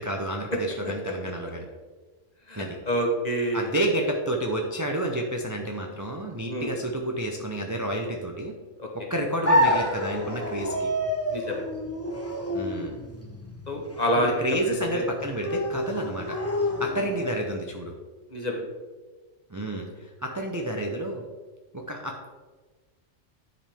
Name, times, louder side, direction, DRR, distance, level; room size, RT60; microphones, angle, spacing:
voice 1, 0.0-1.7 2.6-2.8 3.5-8.5 8.9-10.9 12.5-13.0 14.2-16.4 16.8-17.9 19.5-21.2 21.7-22.3, right 1 dB, 20° right, 1 dB, 0.5 m, -30 dB
voice 2, 2.5-3.7 6.5-6.7 8.8-8.9 11.3-11.6 13.7-14.3 14.9-15.0 18.3-18.6, equal, 35° left, 1 dB, 1.1 m, -27 dB
sound 1, 9.4-17.4, left 1 dB, 15° left, 0.7 m, -28 dB
10.0 x 5.0 x 3.5 m, 1.3 s
omnidirectional pair, 1.3 m